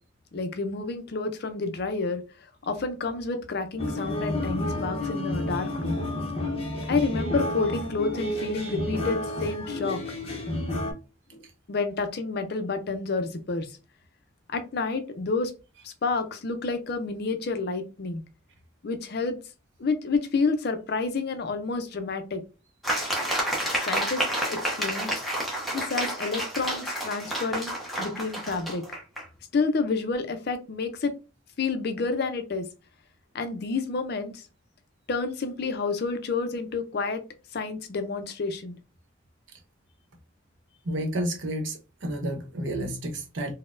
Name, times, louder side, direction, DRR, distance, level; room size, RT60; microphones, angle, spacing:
voice 1, 0.3-6.0 6.9-10.0 11.3-11.4 11.7-13.7 14.5-15.5 15.8-18.2 18.8-19.4 19.8-22.4 23.8-25.1 25.7-28.8 29.5-31.1 31.6-32.7 33.3-34.4 35.1-37.2 37.5-38.8, left 4 dB, 55° left, 0.5 m, -29 dB
sound 1, 3.8-10.9, left 1 dB, 30° left, 0.8 m, -30 dB
sound 2, 22.8-29.3, right 1 dB, ahead, 0.8 m, -30 dB
voice 2, 40.8-43.5, right 1 dB, 70° right, 0.8 m, -31 dB
4.0 x 2.1 x 2.5 m
head